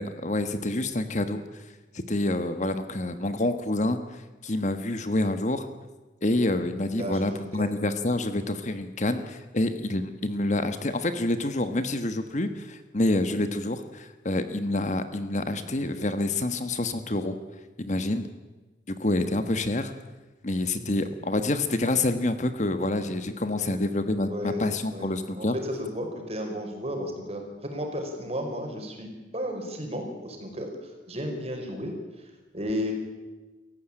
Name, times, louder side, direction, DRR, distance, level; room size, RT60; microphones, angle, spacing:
voice 1, 0.0-1.6 1.9-5.7 6.2-17.4 17.8-18.3 18.9-19.9 20.4-25.5, left 2 dB, 40° left, 9 dB, 1.3 m, -27 dB
voice 2, 7.0-7.7 23.6-23.8 24.3-24.7 24.9-32.9, equal, 35° right, 2 dB, 5.3 m, -34 dB
28.0 x 15.0 x 8.8 m, 1.2 s
head